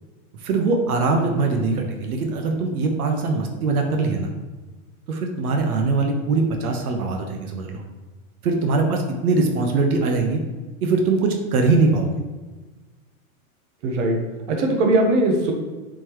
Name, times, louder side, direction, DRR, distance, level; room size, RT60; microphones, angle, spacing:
voice 1, 0.4-4.3 5.1-7.8 8.4-10.4 10.8-12.1, right 3 dB, 80° right, 3 dB, 1.2 m, -22 dB
voice 2, 13.8-15.5, right 2 dB, 55° right, 2 dB, 1.2 m, -20 dB
7.8 x 4.5 x 3.0 m, 1.3 s
supercardioid pair, 165°, 43 cm